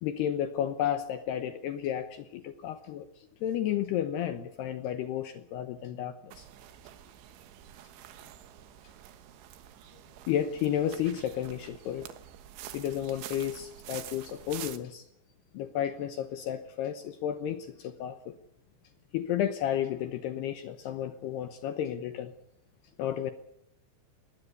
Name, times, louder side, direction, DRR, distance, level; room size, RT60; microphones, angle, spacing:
voice 1, 0.0-3.1 3.4-6.5 10.3-12.1 12.7-15.1 15.5-18.3 19.1-22.3 23.0-23.3, left 10 dB, 75° left, 10 dB, 2.5 m, -32 dB
sound 1, 6.3-14.8, right 12 dB, 70° right, 3.5 m, -47 dB
20.0 x 20.0 x 8.1 m, 0.77 s
omnidirectional pair, 5.9 m